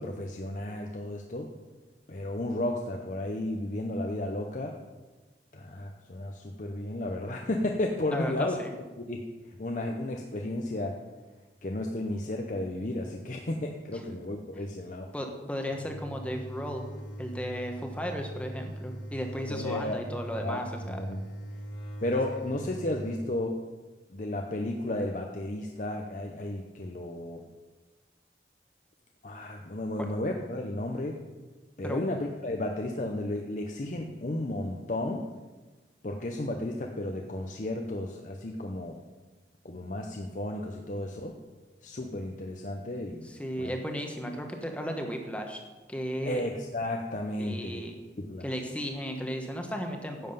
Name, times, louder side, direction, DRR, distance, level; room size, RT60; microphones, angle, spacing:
voice 1, 0.0-1.5 2.1-4.8 5.5-8.6 9.0-9.2 9.6-11.0 11.6-15.1 19.5-20.0 20.4-20.6 20.9-21.2 22.0-23.6 24.1-27.4 29.2-31.2 31.8-35.3 36.0-39.0 39.6-41.3 41.8-43.3 43.6-43.7 46.2-47.8 48.2-48.5, left 1 dB, 45° left, 2 dB, 0.7 m, -33 dB
voice 2, 8.1-8.7 13.9-14.0 15.1-16.8 17.2-21.0 30.0-30.1 31.8-32.0 43.2-45.6 45.9-46.4 47.4-48.0 48.4-50.3, equal, 5° left, 3 dB, 1.1 m, -35 dB
sound 1, 15.7-23.3, right 1 dB, 85° left, 1.9 m, -41 dB
10.5 x 7.7 x 5.5 m, 1.2 s
head